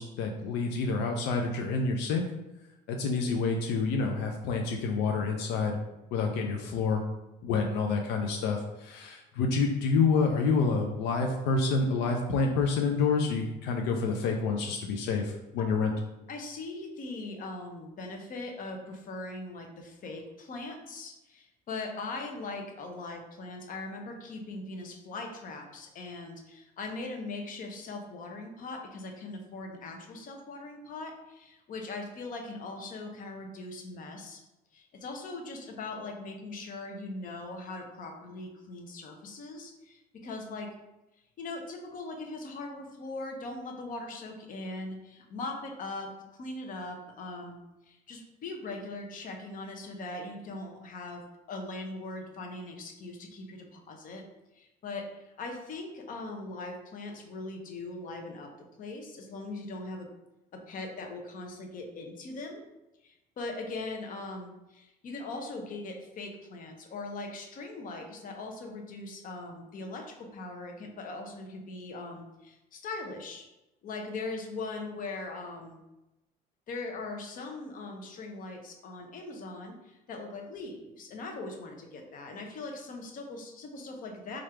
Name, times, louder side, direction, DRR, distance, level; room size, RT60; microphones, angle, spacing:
voice 1, 0.0-2.2 2.9-5.8 6.1-7.0 7.4-15.9, left 4 dB, 90° left, 2 dB, 0.5 m, -28 dB
voice 2, 16.3-34.4 34.7-40.7 41.4-46.1 46.4-47.6 47.9-51.2 51.5-54.2 54.5-58.5 58.8-60.1 60.5-62.6 63.0-73.5 73.8-75.8 76.7-84.4, left 2 dB, 55° left, 3 dB, 0.8 m, -40 dB
3.2 x 2.5 x 4.3 m, 0.97 s
cardioid pair, 110°, 17 cm